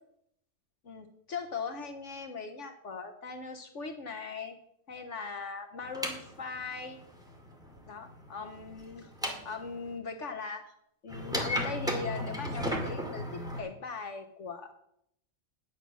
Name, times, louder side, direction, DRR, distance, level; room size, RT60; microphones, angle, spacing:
voice 1, 0.8-4.5 4.9-7.0 7.9-10.7 11.0-14.7, left 4 dB, 65° left, 6 dB, 1.3 m, -40 dB
sound 1, 5.8-9.9 11.1-13.6, left 1 dB, 5° right, 2.2 m, -35 dB
10.0 x 8.8 x 6.1 m, 0.73 s
omnidirectional pair, 1.4 m